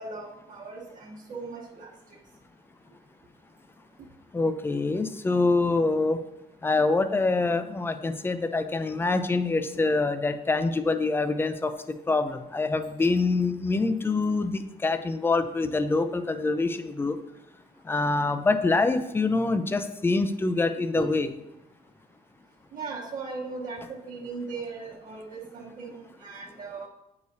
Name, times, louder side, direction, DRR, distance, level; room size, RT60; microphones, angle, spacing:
voice 1, 0.0-1.9 9.7-9.8 20.9-21.1 22.7-26.9, right 4 dB, 55° right, -3 dB, 1.2 m, -38 dB
voice 2, 4.3-6.2 6.6-11.7 12.1-17.2 17.9-21.3, left 3 dB, 15° left, 10 dB, 0.4 m, -25 dB
8.2 x 4.8 x 2.7 m, 0.92 s
cardioid pair, 110°, 17 cm